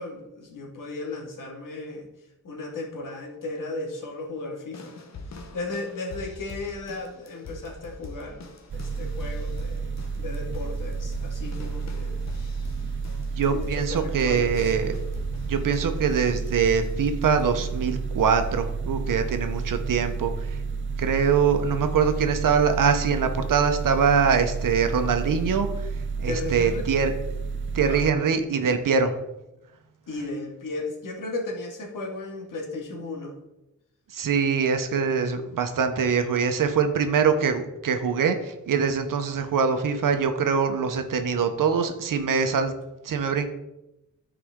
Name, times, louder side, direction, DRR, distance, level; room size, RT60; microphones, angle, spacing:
voice 1, 0.0-2.1 2.4-5.0 5.5-9.9 10.1-12.2 13.4-14.8 26.2-26.8 27.9-28.1 30.1-33.4, left 2 dB, 80° left, 0 dB, 2.2 m, -35 dB
sound 1, 4.7-18.0 18.4-18.8 19.6-19.7, left 3 dB, 55° left, 1.1 m, -43 dB
sound 2, 8.7-28.1, right 4 dB, 40° right, 0.5 m, -31 dB
voice 2, 13.4-14.9 15.4-20.3 21.0-25.7 26.2-27.1 27.7-29.2 34.1-42.7 43.0-43.5, right 6 dB, 85° right, 7 dB, 1.0 m, -23 dB
13.0 x 4.9 x 3.7 m, 0.92 s
wide cardioid pair, 130°, 32 cm